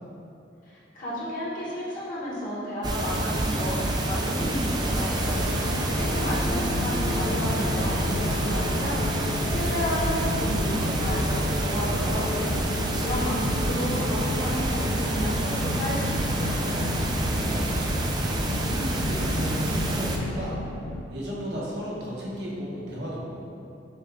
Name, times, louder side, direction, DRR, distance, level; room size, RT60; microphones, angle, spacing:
voice 1, 0.7-12.3 12.7-16.6, equal, 45° left, -8 dB, 1.0 m, -32 dB
sound 1, 2.8-20.2, right 1 dB, 25° right, 0.4 m, -27 dB
sound 2, 5.2-21.0, left 3 dB, 85° left, 0.3 m, -33 dB
voice 2, 16.9-18.0 18.5-20.6 21.1-23.2, equal, 65° right, -6 dB, 1.0 m, -35 dB
6.5 x 2.3 x 3.5 m, 2.7 s
head